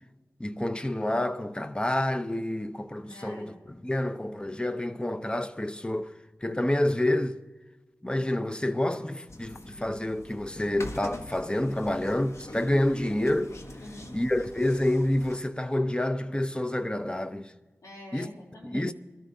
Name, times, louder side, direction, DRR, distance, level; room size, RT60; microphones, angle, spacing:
voice 1, 0.4-3.5 3.8-6.1 6.4-7.4 8.0-13.5 14.1-17.5 18.1-18.3 18.6-18.9, left 1 dB, 15° left, 0.7 m, -28 dB
voice 2, 3.1-3.6 13.8-14.2 17.8-18.9, left 1 dB, 85° left, 3.1 m, -45 dB
sound 1, 9.3-15.4, left 1 dB, 55° left, 1.1 m, -43 dB
22.0 x 13.0 x 2.7 m
wide cardioid pair, 55°, 6 cm